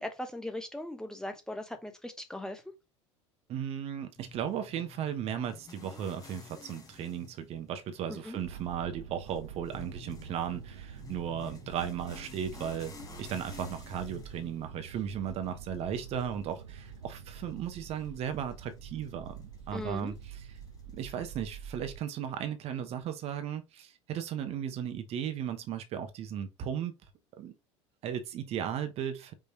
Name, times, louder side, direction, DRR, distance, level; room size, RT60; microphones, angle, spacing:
voice 1, 0.0-2.6 8.1-8.4 19.7-20.1, left 1 dB, 5° left, 0.9 m, -39 dB
voice 2, 3.5-20.6 20.9-26.9 27.4-27.5 28.0-29.3, right 9 dB, 40° right, 0.9 m, -36 dB
sound 1, 4.2-21.5, left 4 dB, 25° left, 1.3 m, -53 dB
sound 2, 8.4-22.0, right 8 dB, 75° right, 0.6 m, -47 dB
5.5 x 3.2 x 2.9 m
figure-of-eight pair, 70°, 16 cm